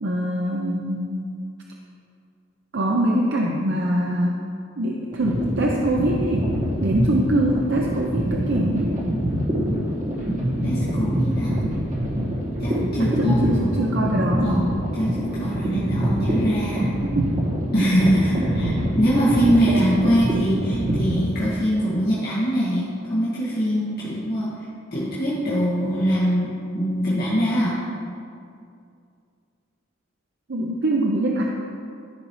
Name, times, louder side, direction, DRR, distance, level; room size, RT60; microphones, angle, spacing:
voice 1, 0.0-1.4 2.7-4.4 4.8-6.5 6.8-9.0 13.2-14.8 17.0-17.5 18.3-18.5 30.5-31.4, right 1 dB, 60° right, -1 dB, 0.6 m, -23 dB
sound 1, 5.1-21.2, equal, 40° right, 1.6 m, -25 dB
voice 2, 10.6-11.6 12.6-13.7 14.4-16.9 17.7-24.7 24.9-27.8, equal, 50° left, -10 dB, 1.8 m, -23 dB
14.0 x 5.3 x 3.1 m, 2.4 s
head